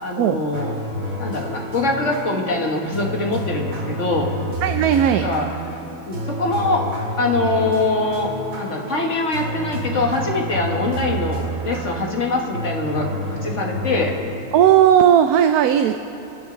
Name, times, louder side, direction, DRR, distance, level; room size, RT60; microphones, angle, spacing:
voice 1, 0.0-0.8 1.2-4.3 5.0-5.5 6.1-6.8 7.2-8.3 8.6-13.1 13.4-14.1, left 2 dB, 50° left, 0 dB, 2.0 m, -23 dB
sound 1, 0.5-14.2, equal, 65° right, 2.3 m, -29 dB
voice 2, 4.6-5.3 14.5-15.9, right 10 dB, 80° right, 8 dB, 1.1 m, -15 dB
29.0 x 12.0 x 3.9 m, 2.9 s
omnidirectional pair, 1.6 m